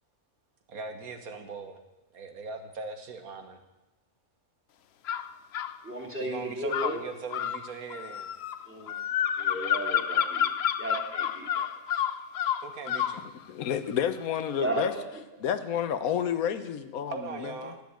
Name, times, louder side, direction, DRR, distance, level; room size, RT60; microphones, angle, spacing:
voice 1, 0.7-1.8 2.1-3.6 6.2-8.3 12.6-13.3 17.1-17.8, right 4 dB, 85° right, 7 dB, 1.7 m, -40 dB
sound 1, 5.1-5.8 6.7-13.2, left 9 dB, 60° left, 0.7 m, -29 dB
voice 2, 5.8-7.0 8.7-9.0 9.4-10.5 10.8-11.7 14.6-15.0, right 2 dB, 10° right, 0 dB, 2.8 m, -34 dB
voice 3, 13.5-14.9 15.4-17.7, left 8 dB, 80° left, 11 dB, 1.3 m, -30 dB
12.0 x 7.0 x 9.4 m, 1.0 s
omnidirectional pair, 1.5 m